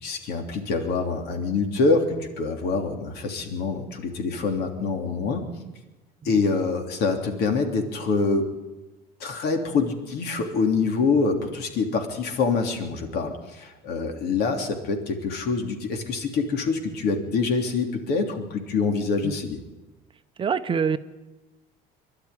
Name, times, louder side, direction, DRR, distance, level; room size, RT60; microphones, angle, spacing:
voice 1, 0.0-5.4 6.2-8.5 9.2-19.6, left 4 dB, 65° left, 4 dB, 3.2 m, -25 dB
voice 2, 20.4-21.0, right 6 dB, 30° right, 10 dB, 0.8 m, -25 dB
22.5 x 12.0 x 9.6 m, 1.1 s
cardioid pair, 130°, 17 cm